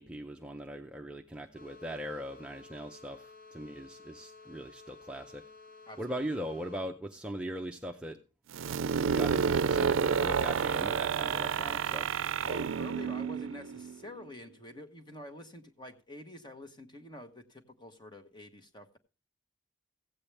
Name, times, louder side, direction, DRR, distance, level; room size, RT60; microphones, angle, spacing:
voice 1, 0.0-5.4 6.0-8.2 9.1-12.1, equal, 5° right, 2 dB, 0.6 m, -40 dB
sound 1, 1.5-6.9, left 4 dB, 45° left, 0.8 m, -53 dB
voice 2, 5.9-6.3 12.4-19.0, left 1 dB, 20° left, 7 dB, 1.1 m, -48 dB
sound 2, 8.5-14.2, right 6 dB, 80° right, 0.4 m, -30 dB
15.5 x 8.6 x 3.3 m, 0.33 s
head